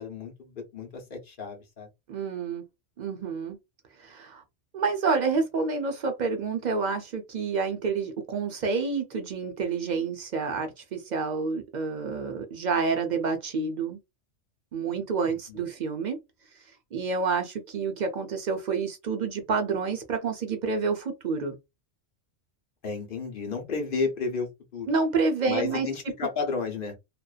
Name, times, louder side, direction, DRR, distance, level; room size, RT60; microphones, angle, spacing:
voice 1, 0.0-1.9 15.5-15.6 22.8-24.9 25.5-26.9, left 4 dB, 50° left, 0.8 m, -32 dB
voice 2, 2.1-2.6 3.0-3.6 4.0-4.4 4.7-14.0 14.7-16.2 16.9-21.6 24.9-25.9, right 4 dB, 65° right, 0.4 m, -28 dB
2.5 x 2.1 x 2.3 m
omnidirectional pair, 1.2 m